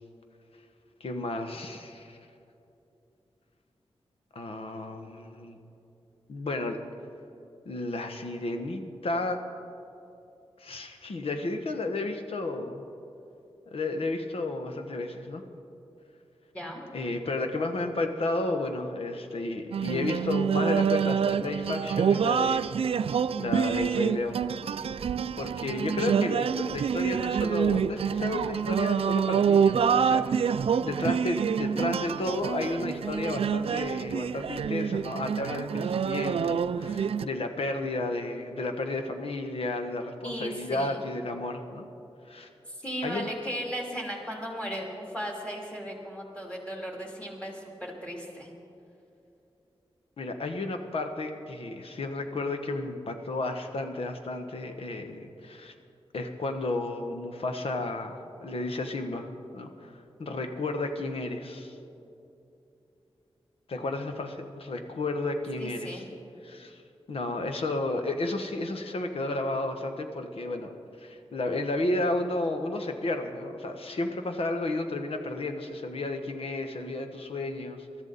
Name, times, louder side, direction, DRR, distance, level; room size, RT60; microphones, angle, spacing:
voice 1, 1.0-2.2 4.3-5.6 6.3-6.8 7.6-9.4 10.6-12.8 13.7-15.4 16.9-22.7 23.4-24.4 25.4-41.9 42.3-42.5 43.0-43.3 50.2-55.7 56.1-59.3 59.5-61.7 63.7-66.0 66.4-66.8 67.1-70.7 71.0-77.9, left 2 dB, 70° left, 5 dB, 1.3 m, -32 dB
sound 1, 19.7-37.2, right 7 dB, 75° right, 0.4 m, -27 dB
voice 2, 40.2-41.0 42.7-48.5 65.6-66.0, equal, 10° left, -1 dB, 3.0 m, -36 dB
23.0 x 13.5 x 4.1 m, 2.8 s
wide cardioid pair, 115°, 10 cm